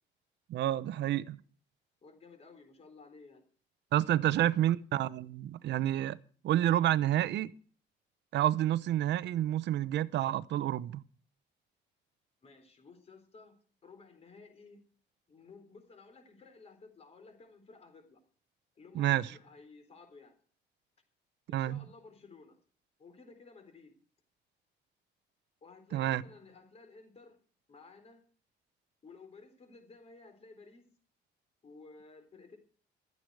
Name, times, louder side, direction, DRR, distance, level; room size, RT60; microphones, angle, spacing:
voice 1, 0.5-1.4 3.9-6.2 6.4-7.5 8.3-11.0 18.9-19.3 21.5-21.8 25.9-26.2, right 12 dB, 70° right, 0.8 m, -29 dB
voice 2, 2.0-3.4 4.1-4.7 12.4-14.8 15.3-18.2 18.8-20.4 21.5-22.6 23.0-23.9 25.6-27.4 27.7-28.2 29.0-30.9 31.6-32.6, left 4 dB, 35° left, 3.9 m, -55 dB
15.5 x 13.5 x 4.8 m
cardioid pair, 165°, 19 cm